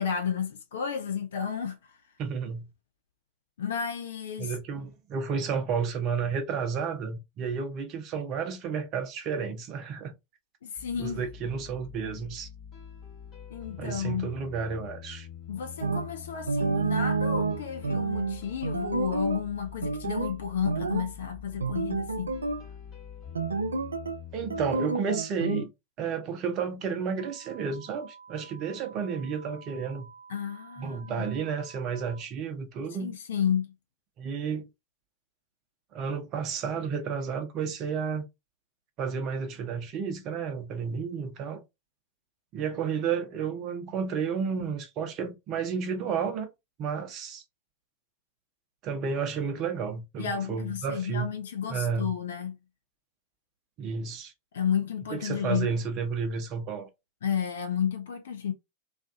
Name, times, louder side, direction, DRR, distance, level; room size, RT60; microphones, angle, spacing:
voice 1, 0.0-2.0 3.6-4.5 10.6-11.2 13.5-14.3 15.5-22.4 30.3-31.2 33.0-33.7 50.2-52.6 54.5-55.7 57.2-58.5, left 7 dB, 60° left, 0.4 m, -32 dB
voice 2, 2.2-2.7 4.4-10.1 11.0-12.5 13.8-15.3 24.3-25.7 26.0-30.1 30.8-33.1 34.2-34.7 35.9-38.2 39.0-41.6 42.5-46.5 46.8-47.4 48.8-51.3 51.7-52.1 53.8-54.3 55.1-56.9, right 6 dB, 35° right, 0.6 m, -31 dB
sound 1, 10.8-24.8, left 9 dB, 30° left, 1.0 m, -45 dB
sound 2, 15.8-16.1 16.5-19.5 19.8-20.4 20.6-21.1 21.6-22.6 23.3-24.2 24.5-25.7, right 3 dB, 75° right, 0.3 m, -29 dB
sound 3, 27.2-32.2, right 5 dB, 80° left, 0.8 m, -50 dB
2.5 x 2.3 x 2.5 m
figure-of-eight pair, 90°, 0 cm